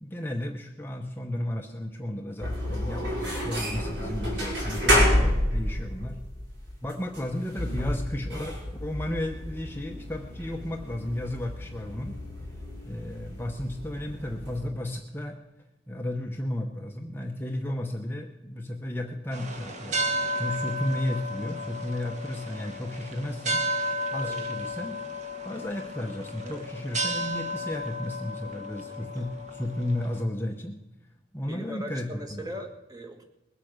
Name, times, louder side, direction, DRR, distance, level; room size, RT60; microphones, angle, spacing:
voice 1, 0.0-6.2 6.8-12.2 12.9-15.4 15.9-20.0 20.3-23.6 24.1-25.0 25.4-30.8 31.3-32.5, left 1 dB, 10° left, 2 dB, 0.9 m, -33 dB
sound 1, 2.4-14.6, equal, 65° right, 5.5 m, -30 dB
sound 2, 19.3-30.2, equal, 40° right, 1.5 m, -33 dB
voice 2, 31.4-33.2, equal, 20° right, 4 dB, 1.6 m, -40 dB
21.0 x 8.3 x 6.5 m, 0.98 s
head